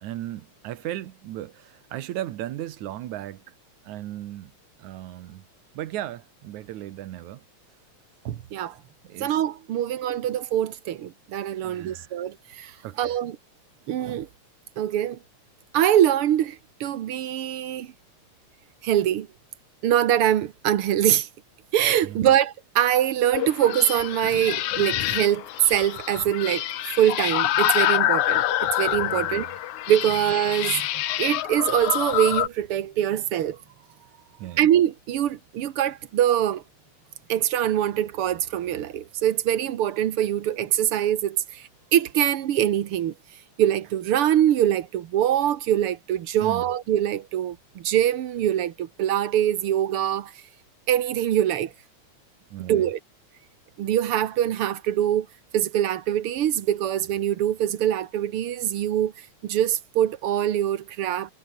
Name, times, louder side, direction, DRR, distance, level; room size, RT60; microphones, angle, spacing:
voice 1, 0.0-3.6 3.8-4.5 4.8-5.5 5.7-7.5 9.0-9.4 10.1-10.2 11.6-12.2 12.8-13.2 22.0-22.3 29.1-29.6 30.1-30.2 33.5-34.6 46.4-46.7 52.5-52.9, right 13 dB, 85° right, 2.5 m, -37 dB
voice 2, 8.3-8.8 9.2-12.7 13.0-13.4 13.9-14.3 14.8-15.2 15.7-17.9 18.8-19.3 19.8-21.3 21.7-29.5 29.9-30.9 31.2-33.6 34.6-36.6 37.3-43.1 43.6-50.3 50.9-51.7 52.7-53.0 53.8-55.3 55.5-59.1 59.4-61.3, right 11 dB, 60° right, 1.7 m, -23 dB
sound 1, 23.3-32.5, left 13 dB, 85° left, 2.6 m, -26 dB
omnidirectional pair, 3.3 m